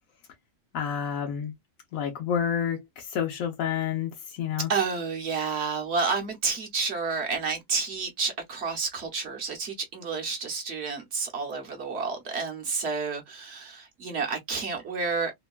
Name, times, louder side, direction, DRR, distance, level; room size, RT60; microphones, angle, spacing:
voice 1, 0.7-1.5 1.9-4.7, left 8 dB, 80° left, 1.1 m, -29 dB
voice 2, 4.7-15.3, right 4 dB, 55° right, 1.0 m, -30 dB
3.0 x 2.2 x 2.2 m
omnidirectional pair, 1.4 m